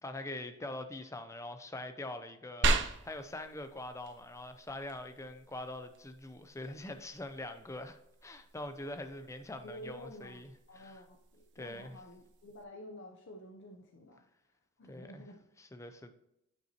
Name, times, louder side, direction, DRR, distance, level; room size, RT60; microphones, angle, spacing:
voice 1, 0.0-11.0 11.6-12.0 14.9-15.2 15.6-16.1, left 1 dB, 15° left, 0.5 m, -44 dB
sound 1, 2.6-12.6, right 3 dB, 55° right, 0.7 m, -39 dB
voice 2, 9.6-14.2 14.8-15.5, equal, 55° left, 0.7 m, -50 dB
9.1 x 5.6 x 2.9 m
head